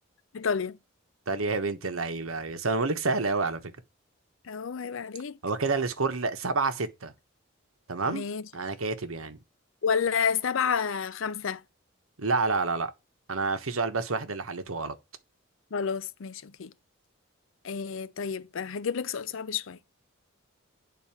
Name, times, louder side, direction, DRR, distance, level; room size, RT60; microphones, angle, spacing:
voice 1, 0.3-0.8 4.5-5.4 8.0-8.4 9.8-11.6 15.7-16.7 17.6-19.8, left 6 dB, 70° left, 0.5 m, -30 dB
voice 2, 1.3-3.7 5.4-7.1 7.9-8.2 8.5-9.4 12.2-12.9 13.3-14.9, right 3 dB, 90° right, 1.2 m, -29 dB
9.2 x 4.0 x 5.8 m
head